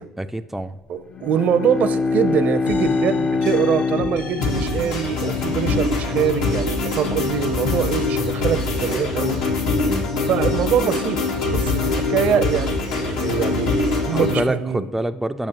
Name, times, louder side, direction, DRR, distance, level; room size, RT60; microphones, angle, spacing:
voice 1, 0.2-0.8 9.8-10.1 14.1-15.5, right 1 dB, 5° right, 8 dB, 0.3 m, -26 dB
voice 2, 0.9-9.4 10.3-14.8, right 8 dB, 60° right, 13 dB, 0.5 m, -24 dB
Bowed string instrument, 1.0-5.7, left 4 dB, 40° left, 0.6 m, -24 dB
sound 1, 2.7-6.7 7.1-8.1, left 4 dB, 55° left, 1.0 m, -35 dB
sound 2, 4.4-14.4, left 3 dB, 75° left, 1.2 m, -23 dB
8.7 x 5.9 x 2.9 m, 1.0 s
hypercardioid pair, 65°, 3 cm